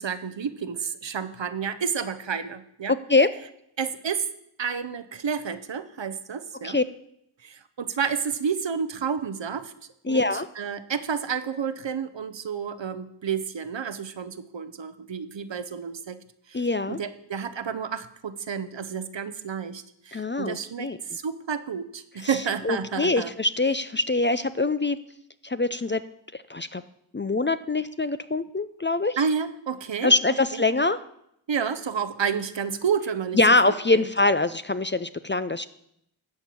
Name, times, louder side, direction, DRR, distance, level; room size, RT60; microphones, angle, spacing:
voice 1, 0.0-3.0 3.8-4.3 4.6-6.8 7.4-9.7 10.1-10.2 10.6-16.2 16.5-23.3 29.2-30.1 30.5-30.6 31.5-33.4 33.7-34.1, right 6 dB, 65° right, 12 dB, 0.9 m, -30 dB
voice 2, 2.9-3.3 6.6-6.8 10.0-10.5 16.5-17.0 20.1-21.0 22.2-22.4 22.6-25.0 25.4-26.0 26.3-26.8 27.1-29.2 30.0-31.0 33.3-35.7, left 2 dB, 25° left, 12 dB, 0.5 m, -24 dB
13.0 x 4.5 x 8.4 m, 0.75 s
cardioid pair, 40°, 48 cm